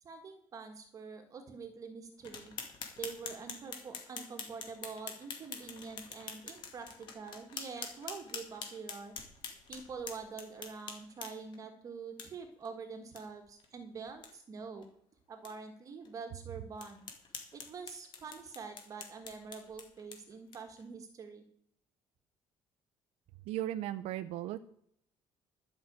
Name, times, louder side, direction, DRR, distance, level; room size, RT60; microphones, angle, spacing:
voice 1, 0.0-2.5 3.0-9.1 9.7-14.9 15.3-17.0 17.5-21.4, right 5 dB, 30° right, 6 dB, 1.4 m, -46 dB
sound 1, 2.2-11.6 12.2-12.3 12.6-12.7 13.1-13.2 13.6-13.7 14.1-14.3 14.8-14.9 15.4-15.5 16.0-16.1 16.8-20.8, left 6 dB, 50° left, 2.1 m, -46 dB
voice 2, 23.5-24.6, right 13 dB, 90° right, 9 dB, 0.6 m, -36 dB
12.0 x 5.9 x 8.6 m, 0.69 s
cardioid pair, 170°, 10 cm